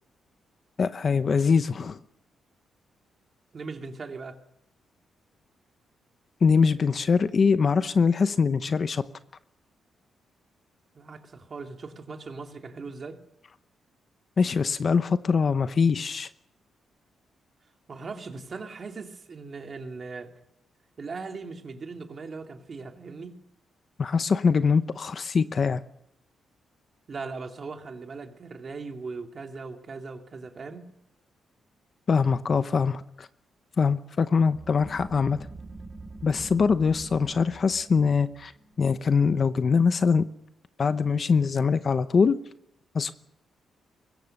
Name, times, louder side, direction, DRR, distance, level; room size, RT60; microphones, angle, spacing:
voice 1, 0.8-2.0 6.4-9.0 14.4-16.3 24.0-25.8 32.1-33.3 33.8-35.4 36.2-38.5 38.8-40.2 40.8-42.4 42.9-43.1, left 5 dB, 35° left, 11 dB, 0.8 m, -23 dB
voice 2, 3.5-4.4 10.9-13.2 17.9-20.3 21.0-23.4 27.1-30.9, right 4 dB, 35° right, 4 dB, 2.6 m, -39 dB
sound 1, 34.5-39.7, right 3 dB, 20° right, 2.2 m, -45 dB
24.5 x 21.5 x 6.6 m, 0.77 s
wide cardioid pair, 165°, 0 cm